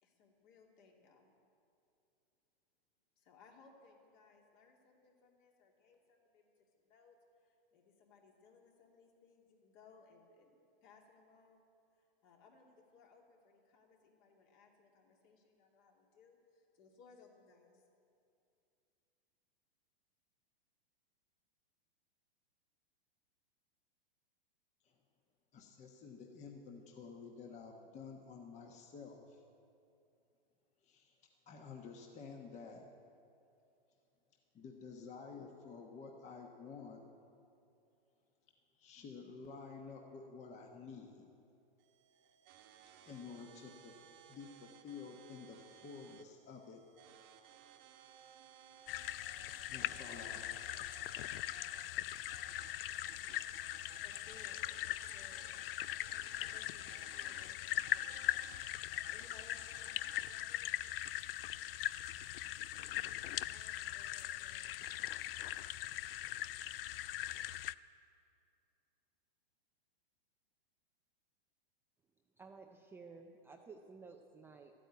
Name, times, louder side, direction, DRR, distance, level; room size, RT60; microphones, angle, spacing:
voice 1, 0.0-1.3 3.2-11.6 11.9-17.8 54.0-55.5 56.5-58.2 58.7-60.8 62.9-64.7, left 4 dB, 50° left, 0 dB, 2.8 m, -64 dB
voice 2, 25.5-29.4 30.8-31.1 31.5-32.8 34.5-37.0 38.8-41.3 43.1-44.0 44.3-46.8 49.6-50.6, left 5 dB, 25° left, 2 dB, 1.2 m, -51 dB
sound 1, 41.8-60.3, right 9 dB, 35° right, 1.2 m, -61 dB
sound 2, 48.9-67.7, left 13 dB, 70° left, 0.5 m, -41 dB
voice 3, 72.4-74.7, right 4 dB, 10° right, 2 dB, 0.4 m, -54 dB
13.5 x 9.1 x 9.4 m, 2.6 s
hypercardioid pair, 130°, 30 cm